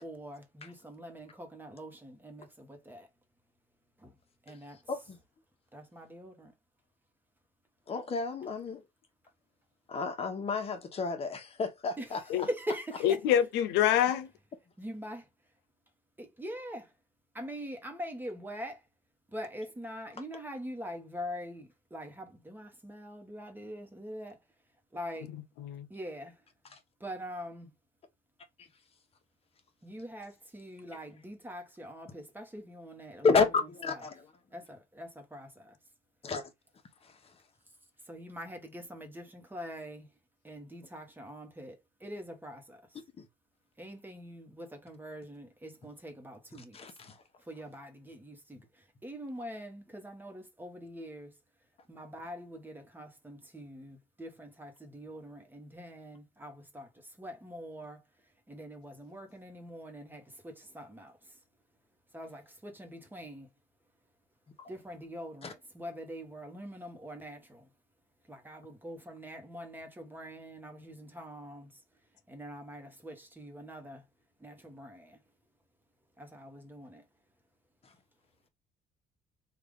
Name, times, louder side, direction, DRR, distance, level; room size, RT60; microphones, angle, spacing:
voice 1, 0.0-3.1 4.0-4.1 4.5-4.8 5.7-6.5 12.0-12.1 12.4-13.2 14.8-15.3 16.2-16.9 17.3-18.8 19.3-24.4 24.9-25.3 25.9-26.4 27.0-27.7 29.8-33.3 33.9-34.0 34.5-35.8 38.1-40.1 40.4-43.0 43.8-47.0 47.4-51.4 51.9-58.0 58.5-61.4 62.1-63.5 64.7-67.7 68.3-71.8 72.3-74.0 74.4-75.2 76.2-77.0, equal, 10° right, 1.0 m, -44 dB
voice 2, 4.9-5.2 7.9-8.9 9.9-12.5 26.7-26.8 28.6-28.7 33.2-34.3 36.2-36.5 37.0-37.1 43.2-43.3 46.5-47.2 64.6-64.7 65.4-65.5, left 4 dB, 35° left, 1.0 m, -31 dB
voice 3, 13.0-14.3 25.6-25.9, left 10 dB, 90° left, 0.5 m, -26 dB
3.4 x 2.5 x 3.5 m
cardioid pair, 110°, 17 cm